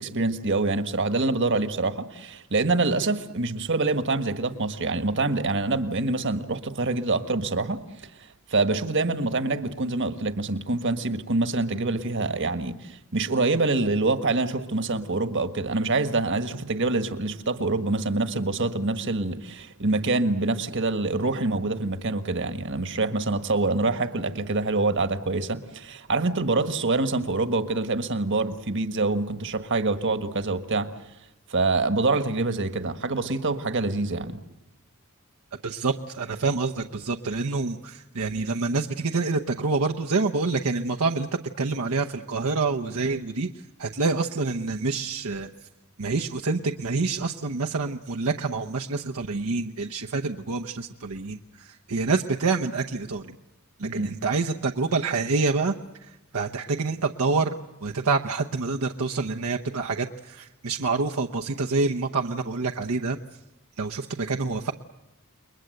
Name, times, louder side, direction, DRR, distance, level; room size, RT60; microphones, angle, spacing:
voice 1, 0.0-7.8 8.5-30.9 31.5-34.4 53.8-54.1, right 3 dB, 55° right, 9 dB, 1.5 m, -25 dB
voice 2, 35.6-43.5 43.8-45.5 46.0-53.4 53.8-55.8 56.0-63.2 63.8-64.7, right 3 dB, 75° right, 3 dB, 0.9 m, -27 dB
29.0 x 22.0 x 7.8 m, 0.93 s
head